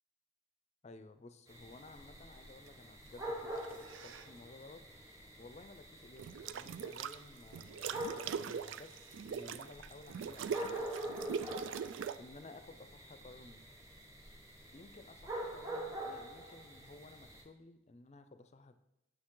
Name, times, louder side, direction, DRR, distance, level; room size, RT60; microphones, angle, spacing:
voice 1, 0.8-13.6 14.7-18.8, left 2 dB, 35° left, 10 dB, 0.5 m, -56 dB
sound 1, 1.5-17.4, right 1 dB, 15° right, 1.1 m, -46 dB
sound 2, 3.6-4.3 6.2-7.2 7.5-12.2, right 7 dB, 75° right, 0.3 m, -41 dB
9.1 x 6.6 x 3.8 m, 0.89 s
head